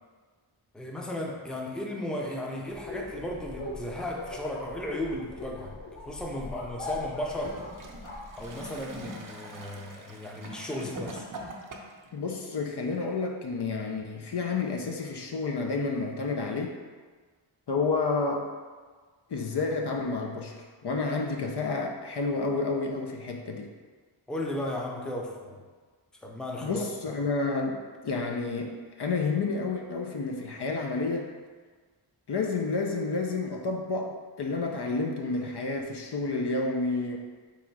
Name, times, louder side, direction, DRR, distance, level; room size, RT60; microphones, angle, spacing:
voice 1, 0.7-5.7 6.1-7.6 8.4-11.3 24.3-25.6 26.2-27.2, left 1 dB, ahead, -1 dB, 0.6 m, -35 dB
sound 1, 2.7-8.9, left 2 dB, 90° left, 0.9 m, -41 dB
Gurgling / Toilet flush, 7.2-12.1 12.9-13.0, right 1 dB, 40° right, 0.6 m, -42 dB
voice 2, 12.1-16.8 17.7-18.5 19.3-23.7 26.6-31.3 32.3-37.2, left 3 dB, 55° left, 1 dB, 0.6 m, -30 dB
3.6 x 3.1 x 4.6 m, 1.5 s
wide cardioid pair, 55°, 49 cm